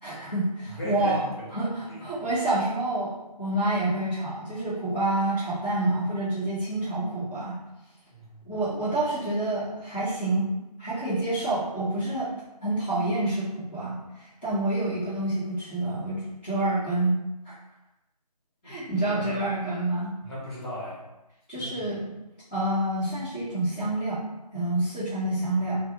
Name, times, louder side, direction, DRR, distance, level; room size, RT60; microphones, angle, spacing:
voice 1, 0.0-1.2 1.5-3.1 3.4-7.6 8.4-10.5 10.8-12.3 12.6-14.0 14.4-17.2 17.4-17.5 18.6-20.1 21.5-22.1 22.5-24.2 24.5-25.8, right 2 dB, 15° left, -17 dB, 0.8 m, -28 dB
voice 2, 0.7-1.5 1.9-2.1 8.1-8.5 18.6-19.4 20.2-21.1 21.5-21.8, equal, 40° left, -8 dB, 1.4 m, -37 dB
3.1 x 2.3 x 2.9 m, 0.96 s
figure-of-eight pair, 165°, 21 cm